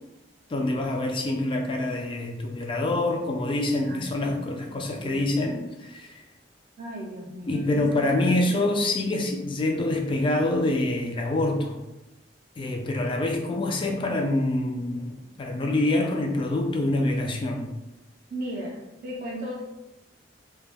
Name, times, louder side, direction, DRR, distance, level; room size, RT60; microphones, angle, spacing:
voice 1, 0.5-6.2 7.5-11.8 12.6-17.7, left 2 dB, 30° left, 2 dB, 0.3 m, -26 dB
voice 2, 3.8-5.3 6.8-8.8 18.3-19.6, equal, 55° right, -4 dB, 0.4 m, -37 dB
2.2 x 2.0 x 3.3 m, 1.0 s
head